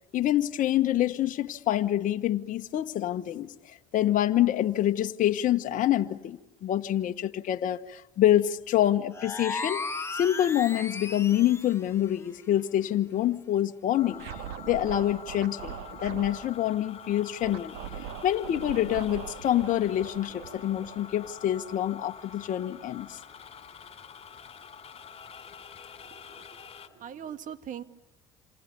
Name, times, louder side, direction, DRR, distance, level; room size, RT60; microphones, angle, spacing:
voice 1, 0.1-9.8 10.1-14.2 14.7-17.8 18.2-23.2, left 12 dB, 50° left, 6 dB, 1.4 m, -26 dB
sound 1, 9.1-11.8, left 3 dB, 15° left, 1.7 m, -35 dB
sound 2, 13.9-26.9, left 7 dB, 35° left, 4.3 m, -46 dB
Scratching (performance technique), 14.1-16.5 17.4-21.7, right 9 dB, 75° right, 2.3 m, -41 dB
voice 2, 26.0-26.5 26.9-27.8, right 9 dB, 50° right, 11 dB, 2.1 m, -41 dB
28.0 x 27.0 x 6.9 m, 0.96 s
supercardioid pair, 80°, 17 cm